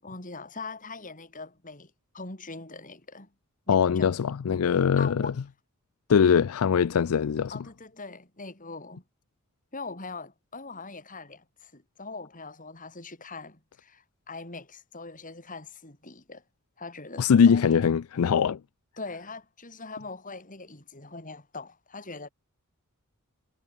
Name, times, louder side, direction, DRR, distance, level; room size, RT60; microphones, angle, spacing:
voice 1, 0.0-3.3 3.7-4.2 5.0-5.4 7.5-9.0 9.7-16.4 16.8-17.8 19.0-22.3, left 3 dB, 40° left, 5.8 m, -42 dB
voice 2, 3.7-5.3 6.1-7.5 17.2-18.6, left 7 dB, 75° left, 0.4 m, -22 dB
head